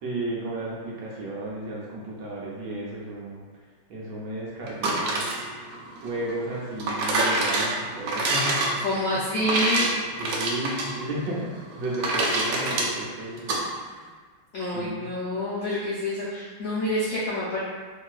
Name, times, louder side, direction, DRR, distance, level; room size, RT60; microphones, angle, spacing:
voice 1, 0.0-3.4 3.9-5.2 6.0-8.7 10.2-13.9 14.7-15.1, right 1 dB, 75° right, -5 dB, 1.2 m, -33 dB
sound 1, 4.7-13.6, right 2 dB, 90° right, 0.7 m, -27 dB
voice 2, 8.8-9.9 14.5-17.6, left 1 dB, 80° left, -8 dB, 0.7 m, -27 dB
3.0 x 2.7 x 2.3 m, 1.5 s
omnidirectional pair, 2.1 m